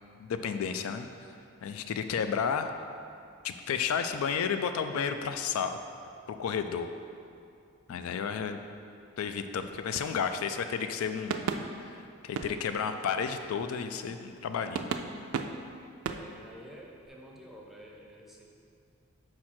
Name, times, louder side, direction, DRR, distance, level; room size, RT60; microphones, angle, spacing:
voice 1, 0.2-1.1 1.6-2.7 3.4-5.8 6.3-6.9 7.9-8.6 9.2-11.5 11.9-12.0 12.2-14.9, left 6 dB, 85° left, 8 dB, 0.3 m, -32 dB
sound 1, 9.5-11.0 11.3-13.9 14.3-14.4 14.7-17.1, right 5 dB, 90° right, 0.4 m, -38 dB
voice 2, 16.1-18.4, equal, ahead, -3 dB, 0.6 m, -50 dB
6.0 x 4.8 x 4.3 m, 2.5 s
head